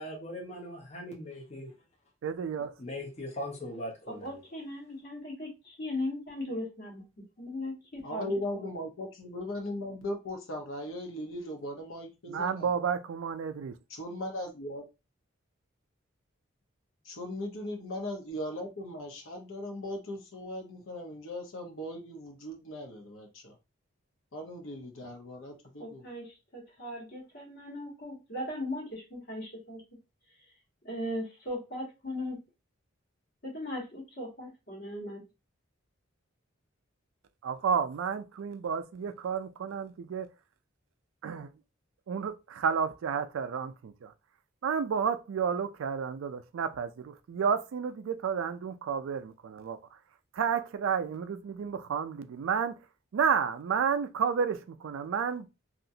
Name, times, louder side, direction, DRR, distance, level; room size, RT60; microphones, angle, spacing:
voice 1, 0.0-1.7 2.8-4.4, left 1 dB, 35° left, 0.7 m, -40 dB
voice 2, 2.2-2.8 12.3-13.7 37.4-40.3 41.2-41.5 42.1-44.1 44.6-49.8 50.3-52.8 53.1-55.5, right 6 dB, 75° right, 0.3 m, -31 dB
voice 3, 4.2-5.5 5.8-7.0 7.4-8.3 25.8-26.3 26.5-29.8 30.8-32.4 33.4-35.2, left 1 dB, 50° left, 1.5 m, -38 dB
voice 4, 8.0-12.7 13.9-14.8 17.0-23.6 24.3-26.0, left 1 dB, 80° left, 0.9 m, -38 dB
2.8 x 2.4 x 2.7 m
head